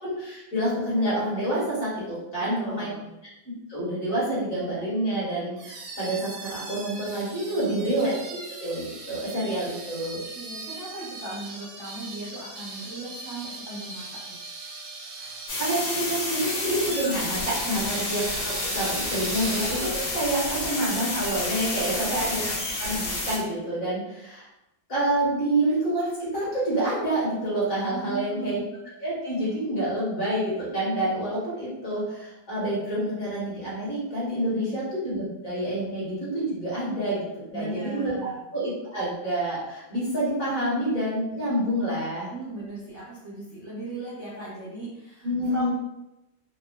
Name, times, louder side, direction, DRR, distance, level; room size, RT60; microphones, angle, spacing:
voice 1, 0.0-2.9 3.7-10.2 15.2-15.3 15.6-22.5 22.8-24.4 24.9-28.6 29.0-37.2 37.5-42.3 45.2-45.7, right 1 dB, 45° left, -9 dB, 1.6 m, -28 dB
voice 2, 2.4-3.1 7.6-7.9 10.0-14.4 21.7-22.5 27.9-28.6 34.5-34.8 37.5-38.4 42.3-45.7, right 2 dB, 60° right, -8 dB, 0.8 m, -38 dB
sound 1, 5.6-20.4, right 3 dB, 85° right, 1.4 m, -39 dB
sound 2, 15.5-23.4, left 2 dB, 70° left, 1.5 m, -30 dB
3.5 x 2.2 x 2.2 m, 0.92 s
omnidirectional pair, 2.1 m